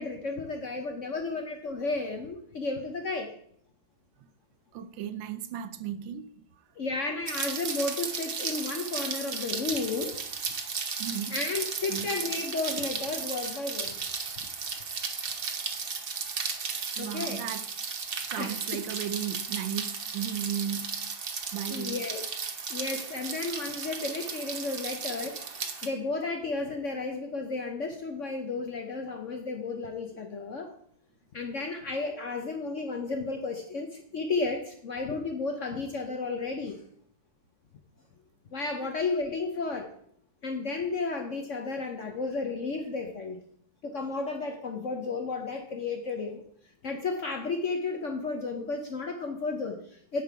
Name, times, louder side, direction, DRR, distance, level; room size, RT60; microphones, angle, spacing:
voice 1, 0.0-3.3 6.8-10.2 11.3-14.0 17.0-17.4 18.4-18.5 21.7-22.2 22.7-30.7 31.3-36.8 38.5-39.9 40.4-43.4 43.8-46.4 46.8-50.2, left 3 dB, 55° left, 0.8 m, -33 dB
voice 2, 4.7-6.7 11.0-11.4 11.9-12.1 17.0-17.7 18.3-21.2 21.5-22.0 38.8-39.0, right 9 dB, 80° right, 1.3 m, -36 dB
Rain, 7.3-25.9, right 5 dB, 60° right, 0.6 m, -35 dB
9.5 x 5.3 x 4.6 m
omnidirectional pair, 2.1 m